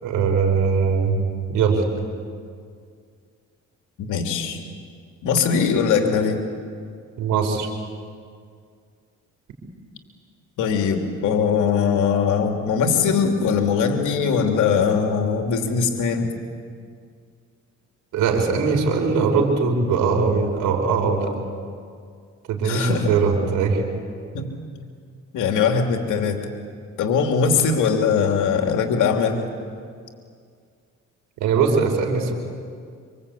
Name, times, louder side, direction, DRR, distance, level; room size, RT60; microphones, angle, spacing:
voice 1, 0.0-1.2 1.5-1.8 7.2-7.7 18.1-21.3 22.5-23.8 31.4-32.3, right 5 dB, 90° right, 3 dB, 4.7 m, -20 dB
voice 2, 4.0-4.6 5.2-6.4 10.6-16.3 22.6-23.1 24.3-24.5 25.3-26.4 27.0-29.4, left 6 dB, 80° left, 3 dB, 3.0 m, -21 dB
26.5 x 25.5 x 8.5 m, 2.2 s
cardioid pair, 90°, 30 cm